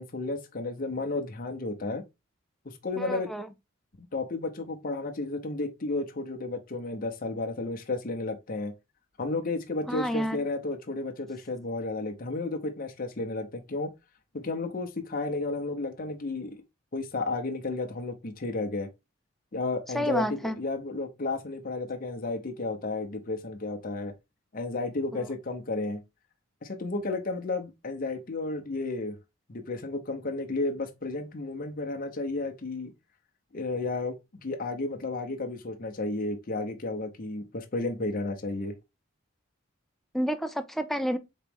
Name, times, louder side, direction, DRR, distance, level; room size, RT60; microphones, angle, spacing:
voice 1, 0.0-2.0 2.6-3.3 4.0-8.7 9.2-13.9 14.3-16.6 16.9-18.9 19.5-24.1 24.5-26.0 26.6-29.2 29.5-32.9 33.5-38.7, left 2 dB, 40° left, 0.7 m, -32 dB
voice 2, 3.0-3.5 9.9-10.4 19.9-20.6 25.1-25.3 40.1-41.2, equal, ahead, 0.3 m, -29 dB
4.4 x 3.0 x 3.4 m
head